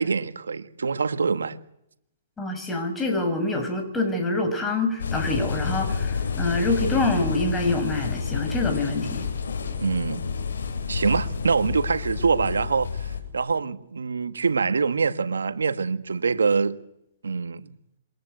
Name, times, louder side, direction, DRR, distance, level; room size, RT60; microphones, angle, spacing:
voice 1, 0.0-1.6 9.8-10.2 10.9-16.8 17.2-17.6, right 5 dB, 90° right, 1.7 m, -25 dB
voice 2, 2.4-9.2, left 2 dB, 10° left, 6.4 m, -26 dB
sound 1, 5.0-13.2, left 5 dB, 80° left, 7.8 m, -29 dB
27.5 x 23.5 x 8.1 m
hypercardioid pair, 135°, 0 cm